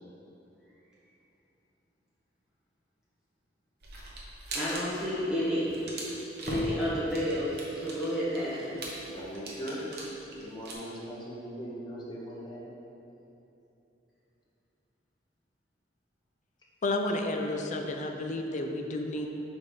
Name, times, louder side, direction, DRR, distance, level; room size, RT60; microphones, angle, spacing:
sound 1, 3.8-4.8 5.1-5.3 5.6-10.7, right 1 dB, 60° right, 1.0 m, -39 dB
voice 1, 4.5-5.7 6.5-8.8, equal, 5° right, -11 dB, 1.2 m, -30 dB
voice 2, 9.1-9.8 10.3-12.7, equal, 25° left, -5 dB, 1.0 m, -40 dB
voice 3, 16.8-19.3, left 2 dB, 40° left, 3 dB, 0.5 m, -31 dB
4.9 x 4.1 x 5.5 m, 3.0 s
head